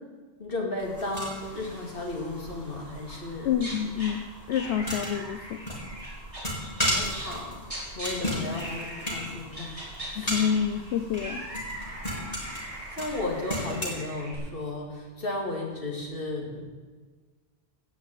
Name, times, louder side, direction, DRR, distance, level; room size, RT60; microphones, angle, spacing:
voice 1, 0.4-3.5 6.8-10.5 12.9-16.6, left 2 dB, 55° left, 1 dB, 2.6 m, -34 dB
sound 1, 0.8-13.9, equal, 35° left, 3.8 m, -36 dB
voice 2, 3.4-5.6 10.2-11.5, left 8 dB, 75° left, 10 dB, 0.9 m, -28 dB
sound 2, 3.5-4.1 4.5-7.4 7.6-8.1 8.5-9.2 9.5-14.4, right 1 dB, 30° right, 4.6 m, -40 dB
16.5 x 6.0 x 8.9 m, 1.4 s
omnidirectional pair, 1.1 m